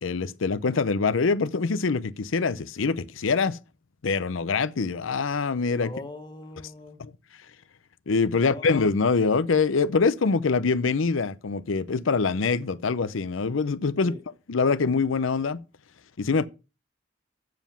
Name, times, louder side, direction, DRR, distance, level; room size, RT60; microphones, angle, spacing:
voice 1, 0.0-3.6 4.0-5.9 8.1-14.2 14.5-15.6 16.2-16.5, left 4 dB, 85° left, 0.6 m, -24 dB
voice 2, 5.8-7.1 8.3-8.7 14.0-14.2, left 2 dB, 25° left, 1.4 m, -41 dB
7.7 x 7.2 x 5.6 m
head